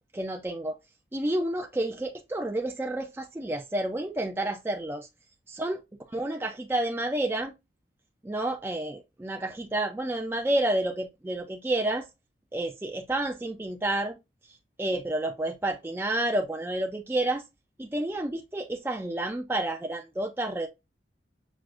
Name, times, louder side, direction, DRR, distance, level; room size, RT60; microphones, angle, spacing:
voice 1, 0.1-0.7 1.1-5.1 5.5-5.8 6.1-7.5 8.2-12.1 12.5-14.2 14.8-17.4 17.8-20.7, right 1 dB, 10° right, 0.3 m, -30 dB
6.1 x 2.5 x 2.3 m
head